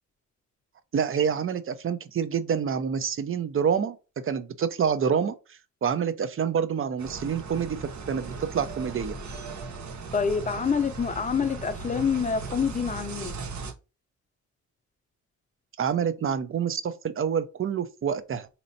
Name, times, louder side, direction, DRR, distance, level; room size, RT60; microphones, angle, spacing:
voice 1, 0.9-4.0 4.2-5.3 5.8-9.2 15.8-18.5, right 7 dB, 45° right, 0.5 m, -27 dB
sound 1, 7.0-13.7, right 4 dB, 65° right, 0.9 m, -38 dB
voice 2, 10.1-13.3, left 6 dB, 25° left, 0.5 m, -27 dB
4.2 x 2.9 x 2.6 m
cardioid pair, 105°, 30 cm